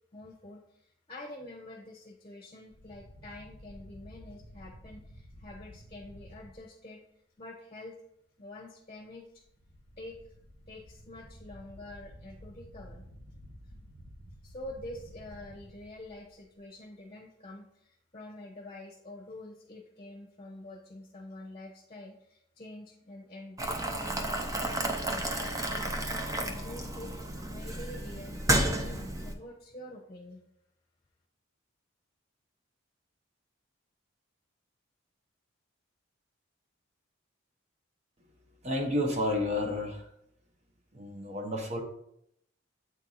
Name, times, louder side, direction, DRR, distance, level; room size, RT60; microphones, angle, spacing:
voice 1, 0.1-7.0 7.4-8.0 8.4-9.4 10.0-10.3 10.7-13.1 14.4-25.8 26.4-27.1 27.5-30.4, left 1 dB, 25° left, 1 dB, 0.9 m, -47 dB
sound 1, 2.7-6.6 9.4-16.7, equal, 90° right, 1.6 m, -52 dB
Boiling, 23.6-29.3, right 1 dB, 15° right, 0.6 m, -32 dB
voice 2, 38.6-40.1 40.9-41.8, left 1 dB, 30° right, 3 dB, 0.9 m, -31 dB
8.2 x 4.5 x 4.0 m, 0.74 s
head